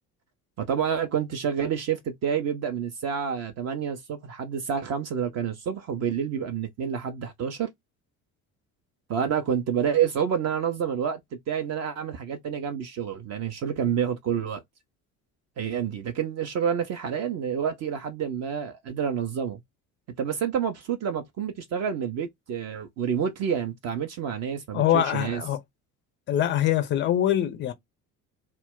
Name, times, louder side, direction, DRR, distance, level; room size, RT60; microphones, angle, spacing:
voice 1, 0.6-7.7 9.1-11.2 11.5-14.6 15.6-19.6 20.2-25.4, right 8 dB, 35° right, 0.5 m, -28 dB
voice 2, 24.7-25.6 26.3-27.7, left 11 dB, 25° left, 0.4 m, -23 dB
2.2 x 2.0 x 3.5 m
figure-of-eight pair, 55°, 47 cm